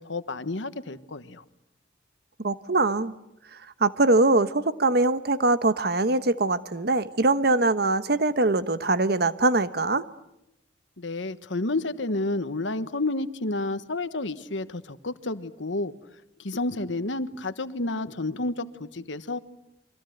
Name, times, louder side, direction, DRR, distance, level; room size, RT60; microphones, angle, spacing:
voice 1, 0.0-1.4 11.0-15.9 16.4-19.4, left 2 dB, 80° left, 1.3 m, -30 dB
voice 2, 2.4-3.1 3.8-10.0, right 2 dB, 55° right, 1.1 m, -22 dB
29.5 x 24.5 x 8.0 m
head